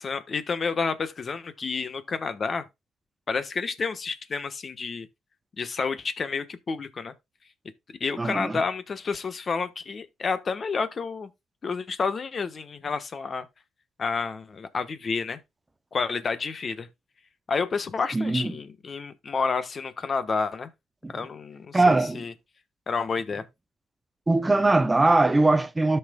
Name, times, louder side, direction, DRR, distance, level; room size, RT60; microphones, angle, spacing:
voice 1, 0.0-2.7 3.3-5.1 5.6-7.1 8.0-11.3 11.6-13.5 14.0-15.4 15.9-16.9 17.5-20.7 21.1-22.3 22.9-23.5, left 5 dB, 40° left, 1.1 m, -30 dB
voice 2, 8.2-8.5 18.1-18.5 21.0-21.1 21.7-22.2 24.3-26.0, right 2 dB, 20° right, 0.5 m, -21 dB
13.0 x 5.6 x 2.3 m
cardioid pair, 90°, 0 cm